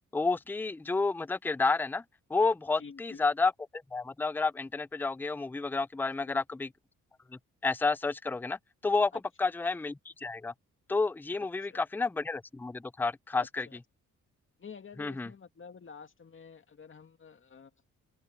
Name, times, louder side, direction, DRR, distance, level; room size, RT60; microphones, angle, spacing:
voice 1, 0.1-2.0 2.3-6.7 7.6-8.6 8.8-9.1 9.4-10.5 10.9-13.7 15.0-15.3, left 3 dB, 5° left, 0.5 m, -30 dB
voice 2, 2.8-3.2 6.2-6.4 9.1-9.5 11.6-11.8 13.4-13.8 14.6-17.7, left 6 dB, 40° left, 2.3 m, -50 dB
open air
cardioid pair, 80°, 30 cm